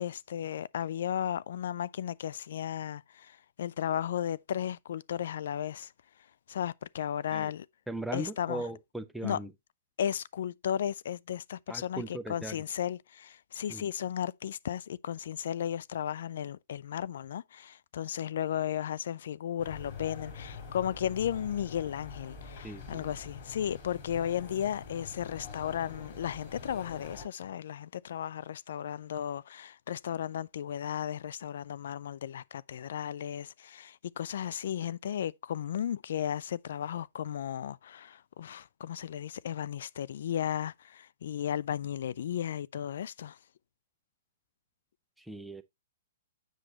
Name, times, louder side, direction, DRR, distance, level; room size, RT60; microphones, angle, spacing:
voice 1, 0.0-5.9 6.5-7.7 8.1-8.6 9.2-9.4 10.0-43.4, left 9 dB, 60° left, 0.3 m, -35 dB
voice 2, 7.9-9.5 11.7-12.6 13.7-13.9 22.6-23.1 45.2-45.6, right 1 dB, 5° right, 0.7 m, -39 dB
sound 1, 19.6-27.2, left 5 dB, 40° left, 4.4 m, -45 dB
7.7 x 6.4 x 2.9 m
figure-of-eight pair, 115°, 0 cm